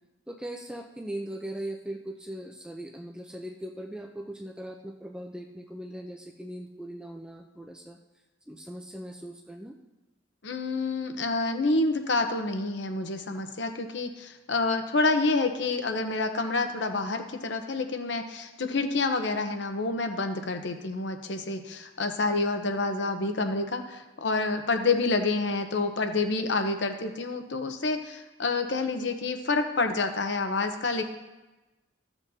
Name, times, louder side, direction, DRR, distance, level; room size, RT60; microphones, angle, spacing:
voice 1, 0.3-8.0 8.5-9.8, right 1 dB, 5° right, 1 dB, 0.4 m, -39 dB
voice 2, 10.4-31.0, left 3 dB, 70° left, 7 dB, 0.8 m, -28 dB
15.0 x 7.1 x 2.7 m, 1.1 s
head